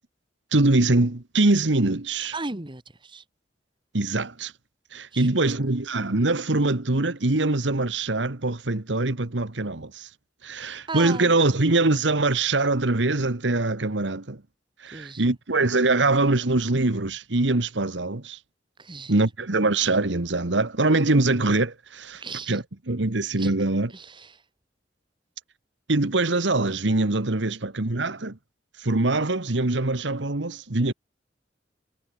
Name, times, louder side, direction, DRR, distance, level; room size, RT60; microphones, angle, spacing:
voice 1, 0.5-2.3 3.9-4.5 4.9-10.1 10.4-14.4 14.8-18.4 19.1-23.9 25.9-28.4 28.8-30.9, right 2 dB, 75° right, 1.6 m, -23 dB
voice 2, 2.3-3.2 5.1-5.3 10.9-11.3 14.9-15.3 18.8-19.1 22.1-22.6 23.4-23.5 23.9-24.4, right 3 dB, 25° right, 1.7 m, -36 dB
head